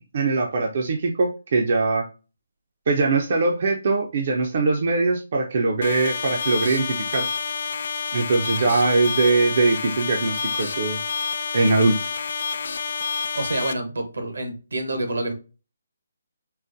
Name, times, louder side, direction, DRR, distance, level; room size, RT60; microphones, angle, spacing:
voice 1, 0.1-2.0 2.9-7.3 8.1-11.0 11.5-12.1, right 3 dB, 50° right, 0.5 m, -21 dB
sound 1, 5.8-13.7, left 5 dB, 60° left, 0.3 m, -29 dB
voice 2, 13.3-15.3, right 1 dB, 85° right, 1.0 m, -27 dB
3.9 x 2.1 x 2.6 m
hypercardioid pair, 155°, 0 cm